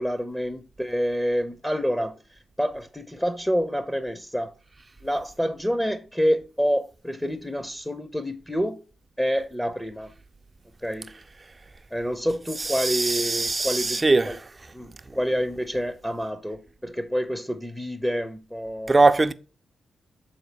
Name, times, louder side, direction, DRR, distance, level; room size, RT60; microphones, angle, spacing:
voice 1, 0.0-2.2 2.6-4.5 5.0-8.8 9.2-10.1 10.8-11.1 11.9-14.4 14.7-19.1, equal, 5° left, 0.8 m, -28 dB
voice 2, 12.6-14.4 18.9-19.3, right 3 dB, 30° right, 0.6 m, -21 dB
7.1 x 3.8 x 5.2 m
cardioid pair, 55°, 0 cm